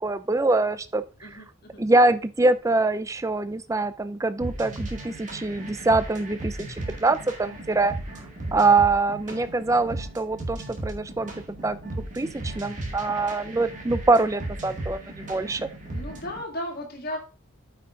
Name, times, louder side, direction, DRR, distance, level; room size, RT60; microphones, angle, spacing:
voice 1, 0.0-1.0 1.8-6.7 7.0-7.9 8.5-11.3 11.6-11.8 12.1-15.6, right 3 dB, 15° right, 12 dB, 0.4 m, -24 dB
sound 1, 4.4-16.4, right 1 dB, 35° right, 1.8 m, -36 dB
voice 2, 15.9-17.2, left 1 dB, 45° left, 2 dB, 2.1 m, -35 dB
8.6 x 5.7 x 3.7 m, 0.33 s
head